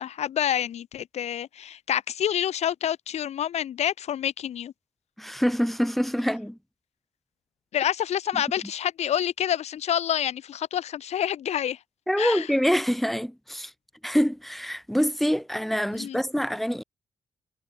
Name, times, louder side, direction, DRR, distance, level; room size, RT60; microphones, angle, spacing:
voice 1, 0.0-4.7 7.7-11.8 12.2-12.5 16.0-16.2, left 10 dB, 70° left, 5.6 m, -28 dB
voice 2, 5.2-6.6 12.1-13.7 14.0-16.8, equal, ahead, 5.2 m, -25 dB
hypercardioid pair, 45°, 12 cm